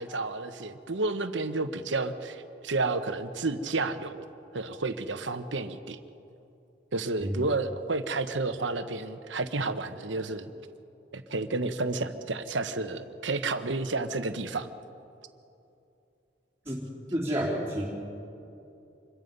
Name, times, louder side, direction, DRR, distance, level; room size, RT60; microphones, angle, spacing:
voice 1, 0.0-4.2 4.5-6.0 6.9-10.5 11.1-14.7, right 3 dB, 85° right, 9 dB, 1.1 m, -31 dB
voice 2, 17.1-17.8, equal, 10° right, -9 dB, 3.5 m, -29 dB
26.5 x 22.5 x 5.5 m, 2.7 s
head